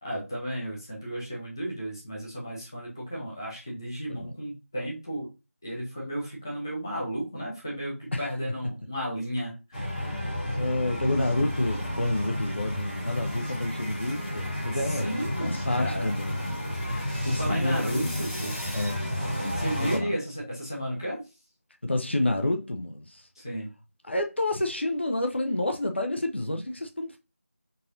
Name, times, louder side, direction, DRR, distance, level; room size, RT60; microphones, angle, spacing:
voice 1, 0.0-5.3 5.6-10.2 14.7-15.5 15.7-16.1 16.8-18.8 19.5-21.2 23.4-23.7, equal, 15° left, 0.7 m, -34 dB
sound 1, 9.7-20.0, left 1 dB, 35° left, 1.2 m, -31 dB
voice 2, 10.5-16.4 17.3-18.2 18.7-19.0 19.8-20.1 21.8-23.3 24.1-27.2, left 1 dB, 50° left, 0.5 m, -29 dB
3.9 x 2.5 x 2.6 m
figure-of-eight pair, 170°, 8 cm